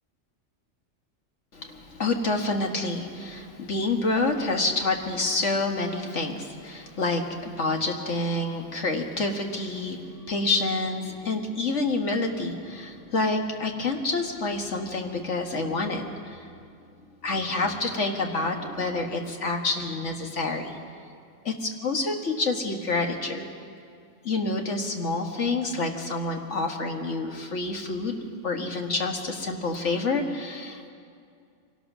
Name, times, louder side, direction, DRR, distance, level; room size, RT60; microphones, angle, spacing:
voice 1, 1.5-16.5 17.2-20.8 21.5-23.5 24.2-30.9, left 3 dB, 70° left, 3 dB, 2.0 m, -28 dB
24.0 x 18.0 x 6.1 m, 2.4 s
omnidirectional pair, 1.3 m